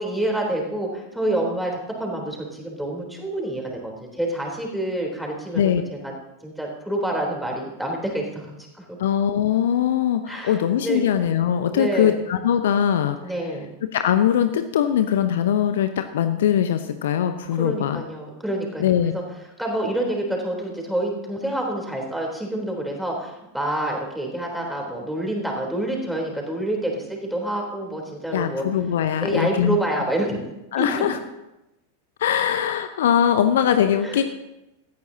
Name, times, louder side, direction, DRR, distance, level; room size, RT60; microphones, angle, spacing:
voice 1, 0.0-6.1 6.4-8.5 8.7-8.8 10.3-11.0 11.7-12.2 13.2-13.7 17.6-19.2 19.6-28.7 29.2-30.4 30.8-31.2 34.0-34.2, right 1 dB, ahead, -1 dB, 3.6 m, -27 dB
voice 2, 9.0-13.2 13.9-18.0 18.8-19.1 28.3-29.8 30.7-31.2 32.2-34.2, left 9 dB, 60° left, 9 dB, 0.8 m, -21 dB
17.5 x 14.0 x 2.9 m, 0.95 s
figure-of-eight pair, 90°, 0 cm